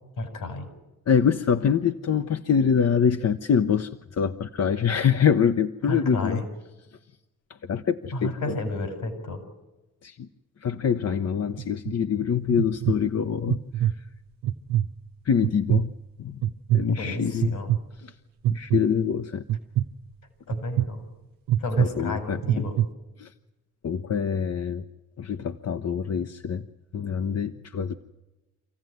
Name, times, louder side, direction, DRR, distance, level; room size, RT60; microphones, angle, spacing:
voice 1, 0.2-0.7 5.9-6.5 8.1-9.4 10.9-11.0 16.9-17.7 20.5-21.0 21.6-22.7, left 2 dB, 70° left, 7 dB, 4.9 m, -31 dB
voice 2, 1.1-6.4 6.9-7.0 7.5-8.5 10.0-10.3 10.6-14.0 15.2-15.9 16.2-16.4 16.7-17.6 17.9-18.1 18.5-19.4 21.8-22.7 23.2-23.3 23.8-24.9 25.2-26.7 26.9-28.0, left 7 dB, 45° left, 8 dB, 0.9 m, -25 dB
sound 1, 11.6-11.9 12.5-13.0 13.5-13.9 14.4-14.9 15.4-15.9 16.4-16.8 17.4-17.8 18.4-18.8 19.5-19.8 20.5-20.9 21.5-21.9 22.4-22.9, right 12 dB, 80° right, 0.8 m, -23 dB
26.0 x 15.5 x 9.3 m, 1.1 s
supercardioid pair, 60°, 34 cm